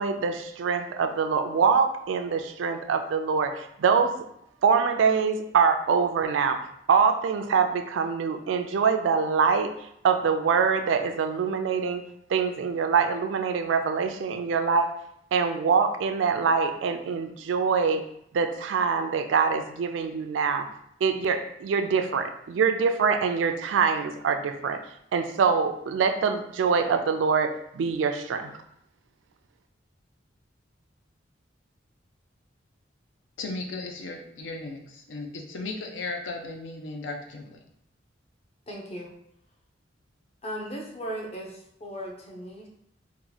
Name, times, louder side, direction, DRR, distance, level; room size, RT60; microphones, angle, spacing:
voice 1, 0.0-4.2 4.6-6.6 6.9-12.0 12.3-15.0 15.3-18.0 18.3-20.7 21.0-24.8 25.1-28.5, right 5 dB, 80° right, 7 dB, 0.3 m, -24 dB
voice 2, 33.4-37.6, left 3 dB, 80° left, 3 dB, 0.6 m, -36 dB
voice 3, 38.7-39.1 40.4-42.7, equal, 35° left, -1 dB, 0.6 m, -37 dB
2.9 x 2.2 x 3.8 m, 0.74 s
head